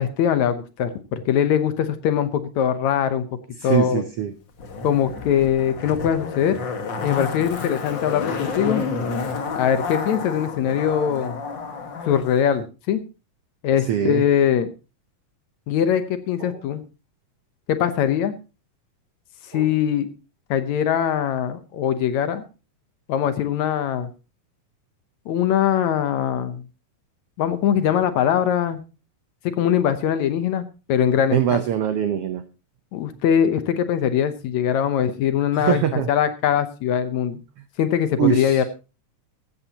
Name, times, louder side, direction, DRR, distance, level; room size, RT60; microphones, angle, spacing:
voice 1, 0.0-3.3 3.6-4.0 4.8-6.6 7.0-8.9 9.6-11.4 12.1-13.0 13.6-14.7 15.7-16.8 17.7-18.3 19.5-20.1 20.5-22.4 23.1-24.1 25.3-26.6 27.4-28.8 29.4-31.6 32.9-37.4 37.8-38.6, left 9 dB, 70° left, 11 dB, 2.0 m, -22 dB
voice 2, 3.6-4.3 13.9-14.2 16.4-16.6 19.5-19.7 31.3-32.4 35.5-36.1 38.2-38.6, right 10 dB, 80° right, 10 dB, 1.3 m, -23 dB
Zipper (clothing), 4.6-12.2 12.5-12.6, left 4 dB, 45° left, 1.8 m, -30 dB
15.5 x 14.0 x 2.9 m, 0.31 s
omnidirectional pair, 3.9 m